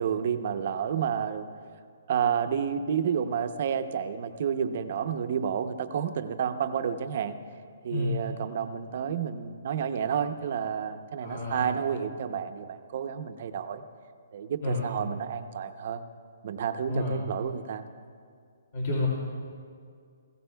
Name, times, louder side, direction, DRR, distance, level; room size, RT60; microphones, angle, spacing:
voice 1, 0.0-1.5 2.1-7.3 7.8-13.8 14.3-16.0 16.4-17.8, right 7 dB, 45° right, 8 dB, 0.7 m, -30 dB
voice 2, 11.2-11.7 14.6-14.9 16.9-17.2 18.7-19.1, left 2 dB, 45° left, -5 dB, 2.5 m, -30 dB
19.0 x 16.0 x 2.3 m, 2.2 s
hypercardioid pair, 165°, 0 cm